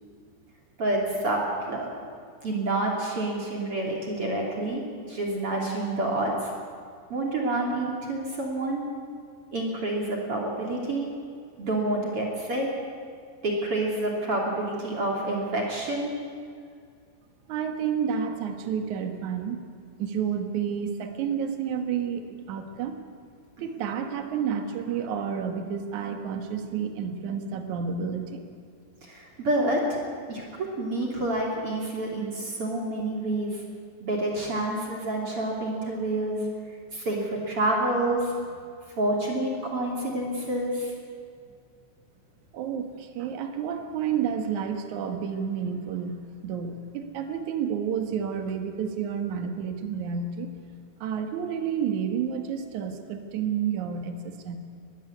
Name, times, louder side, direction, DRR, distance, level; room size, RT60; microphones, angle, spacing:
voice 1, 0.8-1.9 2.4-4.8 5.1-6.5 7.1-8.8 9.5-11.1 11.6-12.7 13.4-16.1 29.0-30.0 30.3-33.6 34.0-36.5 36.9-38.3 39.0-40.9, right 1 dB, 35° right, -1 dB, 3.1 m, -28 dB
voice 2, 17.5-19.7 20.0-23.0 23.6-28.4 42.5-50.5 51.0-54.6, right 7 dB, 60° right, 6 dB, 2.1 m, -30 dB
20.5 x 16.0 x 9.6 m, 2.2 s
omnidirectional pair, 5.5 m